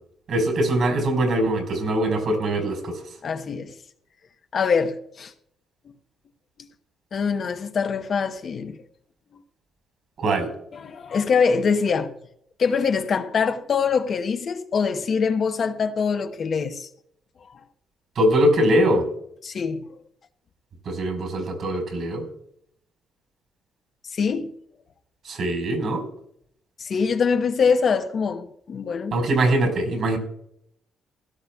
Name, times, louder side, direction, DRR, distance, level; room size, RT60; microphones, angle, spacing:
voice 1, 0.3-3.0 10.2-10.5 18.2-19.1 20.8-22.2 25.3-26.0 29.1-30.2, right 1 dB, 65° right, 4.5 m, -22 dB
voice 2, 3.2-3.7 4.5-5.3 7.1-8.8 10.7-12.1 12.6-16.9 19.4-19.9 24.1-24.5 26.8-29.2, left 5 dB, 50° left, 0.9 m, -24 dB
17.0 x 13.0 x 2.4 m
cardioid pair, 90°, 0 cm